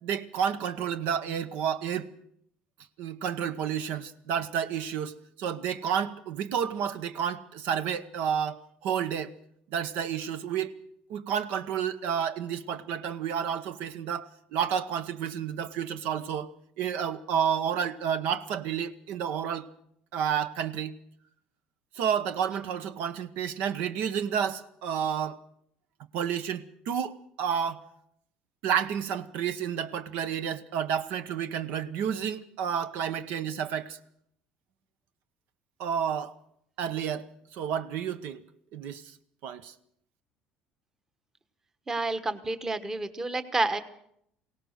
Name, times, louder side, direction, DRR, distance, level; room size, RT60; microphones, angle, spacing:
voice 1, 0.0-2.1 3.0-9.3 9.7-10.7 11.1-16.5 16.8-19.7 20.1-20.9 21.9-25.4 26.1-27.9 28.6-34.0 35.8-36.3 36.8-38.4 38.7-39.1 39.4-39.7, right 8 dB, 70° right, 1.1 m, -30 dB
voice 2, 41.9-43.8, right 2 dB, 15° right, 1.2 m, -29 dB
22.5 x 18.0 x 6.5 m
cardioid pair, 150°, 3 cm